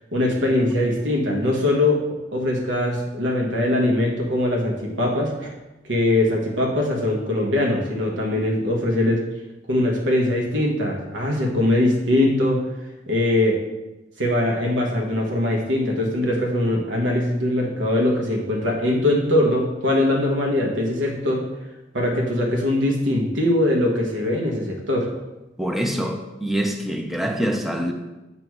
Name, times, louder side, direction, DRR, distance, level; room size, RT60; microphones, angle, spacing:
voice 1, 0.0-2.0 2.3-5.5 5.9-9.2 9.7-12.6 13.1-13.6 14.2-21.4 21.9-25.1, left 1 dB, 85° right, 0 dB, 1.2 m, -21 dB
voice 2, 25.6-27.9, equal, ahead, 3 dB, 0.5 m, -25 dB
8.3 x 3.0 x 4.6 m, 1.1 s
head